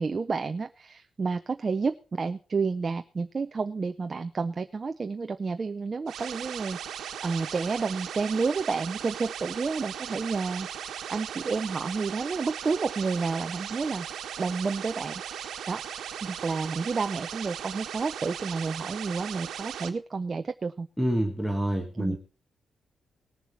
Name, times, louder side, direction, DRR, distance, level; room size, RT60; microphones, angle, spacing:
voice 1, 0.0-7.0 7.2-10.7 11.1-14.1 14.4-20.9 22.0-22.2, right 4 dB, 25° right, 8 dB, 0.5 m, -30 dB
sound 1, 6.1-19.9, right 9 dB, 85° right, 1.2 m, -38 dB
voice 2, 21.0-22.2, equal, ahead, 3 dB, 1.1 m, -27 dB
18.5 x 7.2 x 4.4 m, 0.36 s
wide cardioid pair, 175°, 0 cm